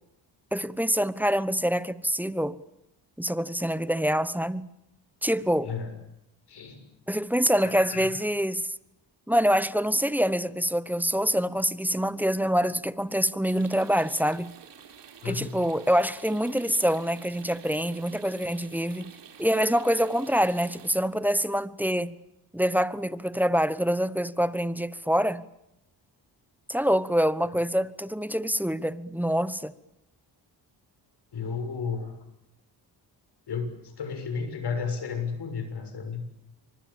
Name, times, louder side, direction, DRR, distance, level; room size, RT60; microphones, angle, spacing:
voice 1, 0.5-2.6 3.2-4.7 5.2-5.7 7.1-8.7 9.3-14.5 15.2-19.1 19.4-22.1 22.5-25.4 26.7-29.7, equal, 5° right, 1.1 m, -25 dB
voice 2, 6.5-6.8 7.6-8.1 15.2-15.6 31.3-32.2 33.5-36.2, left 5 dB, 65° left, 7.1 m, -33 dB
sound 1, 13.5-20.9, right 8 dB, 75° right, 4.3 m, -49 dB
28.5 x 25.5 x 7.2 m
cardioid pair, 85°, 42 cm